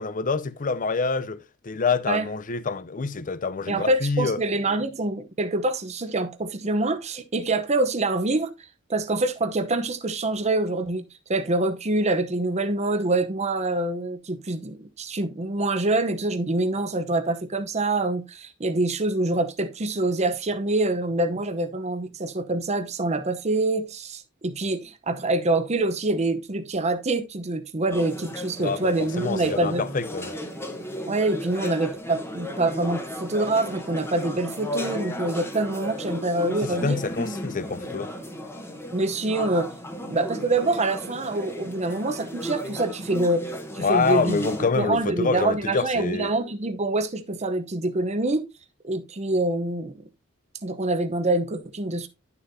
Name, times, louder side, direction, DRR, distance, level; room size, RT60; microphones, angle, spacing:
voice 1, 0.0-4.4 28.6-30.4 36.6-38.1 43.8-46.3, left 4 dB, 40° left, 0.6 m, -26 dB
voice 2, 3.7-8.5 8.9-11.0 11.3-29.8 31.1-37.0 38.9-43.4 43.7-44.5 44.8-48.4 48.8-49.9 50.6-52.1, right 2 dB, 30° right, 0.8 m, -25 dB
sound 1, 27.9-44.7, equal, 10° left, 1.1 m, -35 dB
11.0 x 6.8 x 2.7 m
head